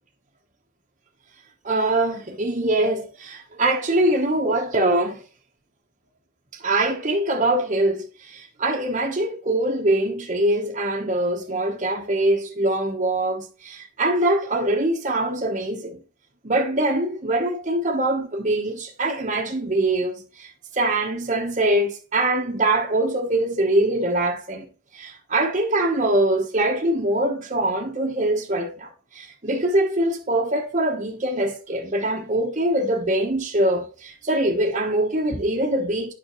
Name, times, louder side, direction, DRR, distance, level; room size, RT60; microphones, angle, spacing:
voice 1, 1.6-5.2 6.6-16.0 16.4-20.5 20.7-24.7 24.9-28.9 29.1-36.1, right 1 dB, 35° right, 1.0 m, -23 dB
9.0 x 5.9 x 3.0 m
head